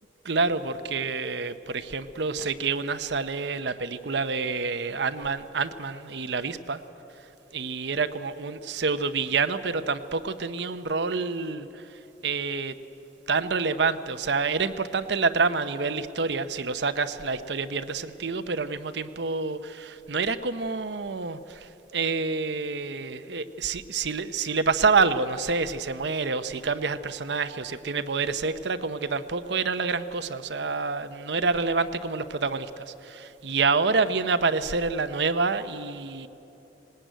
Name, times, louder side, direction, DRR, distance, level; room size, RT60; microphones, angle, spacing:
voice 1, 0.2-6.8 7.5-12.7 13.3-36.3, right 4 dB, 70° right, 11 dB, 0.8 m, -27 dB
19.0 x 19.0 x 9.1 m, 2.9 s
head